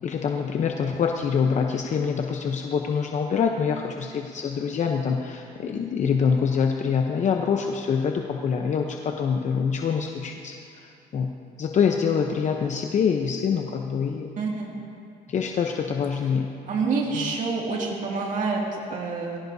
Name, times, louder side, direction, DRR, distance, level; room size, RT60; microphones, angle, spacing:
voice 1, 0.0-11.3 11.6-14.3 15.3-16.5 17.1-17.3, left 6 dB, 45° left, 3 dB, 0.8 m, -25 dB
voice 2, 14.4-14.7 16.7-19.4, right 4 dB, 50° right, -2 dB, 2.4 m, -27 dB
22.5 x 15.5 x 2.8 m, 2.5 s
cardioid pair, 110°, 17 cm